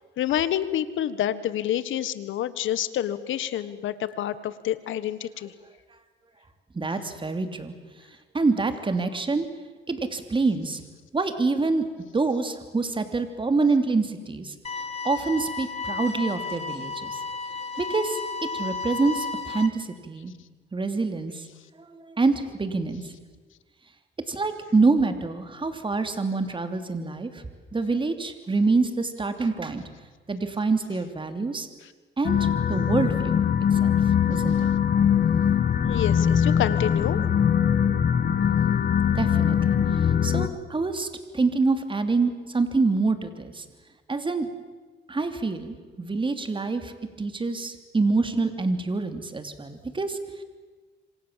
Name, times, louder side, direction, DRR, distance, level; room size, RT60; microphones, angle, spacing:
voice 1, 0.2-5.5 35.9-37.2, left 11 dB, 80° left, 15 dB, 1.5 m, -28 dB
voice 2, 6.7-7.7 8.3-9.5 9.9-10.8 11.1-14.5 15.0-17.2 17.8-18.2 18.5-20.3 20.7-21.5 21.8-23.1 24.3-27.4 27.7-29.8 30.3-31.7 32.2-33.4 33.7-34.0 34.3-34.7 39.1-41.1 41.3-43.6 44.1-44.5 45.1-50.4, right 3 dB, 25° right, 8 dB, 3.0 m, -26 dB
sound 1, 14.6-19.7, left 4 dB, 30° left, 3.1 m, -33 dB
sound 2, 32.2-40.5, left 8 dB, 50° left, 2.0 m, -22 dB
26.5 x 26.0 x 7.5 m, 1.4 s
cardioid pair, 90°, 20 cm